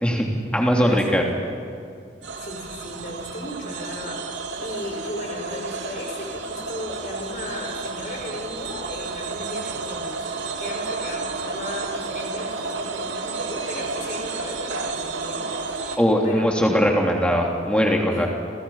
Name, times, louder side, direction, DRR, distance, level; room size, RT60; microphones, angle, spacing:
voice 1, 0.0-1.2 16.0-18.3, equal, 5° left, 0 dB, 3.3 m, -20 dB
voice 2, 0.6-1.5 2.4-16.9 18.1-18.3, left 1 dB, 45° left, 1 dB, 5.7 m, -36 dB
sound 1, 2.2-16.0, right 4 dB, 90° right, 2.5 m, -31 dB
29.5 x 28.0 x 5.8 m, 2.3 s
head